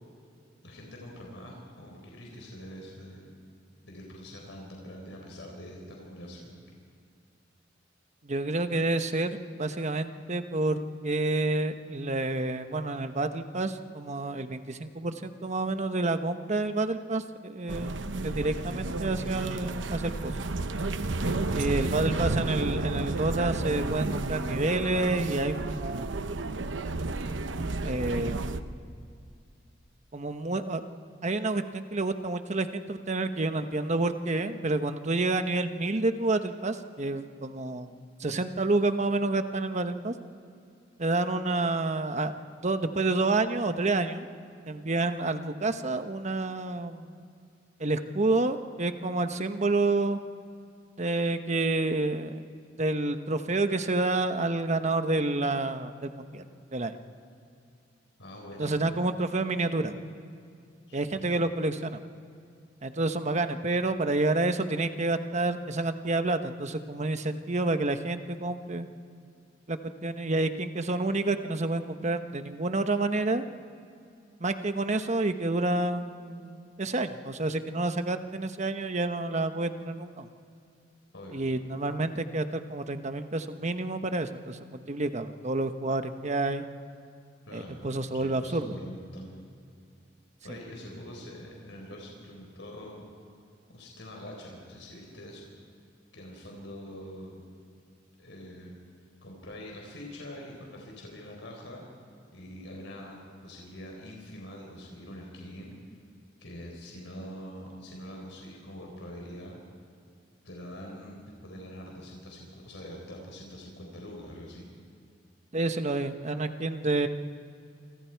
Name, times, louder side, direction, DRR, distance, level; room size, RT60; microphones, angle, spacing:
voice 1, 0.6-3.3 3.8-6.6 21.1-22.4 58.2-58.8 60.9-61.3 81.1-81.4 87.5-87.8 88.1-89.3 90.4-93.0 93.7-95.5 96.1-97.4 98.2-98.8 99.2-101.8 102.3-105.7 106.4-109.6 110.4-114.7, equal, 85° left, -1 dB, 4.2 m, -44 dB
voice 2, 8.2-20.4 21.5-26.2 27.8-28.4 30.1-30.8 31.2-37.9 38.2-40.1 41.0-42.3 42.6-44.3 44.7-47.2 47.8-50.2 51.0-52.4 52.8-56.5 56.7-56.9 58.6-59.9 60.9-62.0 62.8-68.9 69.7-73.4 74.4-80.3 81.3-86.6 87.5-88.7 115.5-117.1, right 2 dB, 40° right, 8 dB, 1.1 m, -29 dB
sound 1, 17.7-28.6, right 2 dB, 90° right, 0.9 m, -32 dB
28.0 x 25.0 x 4.7 m, 2.4 s
head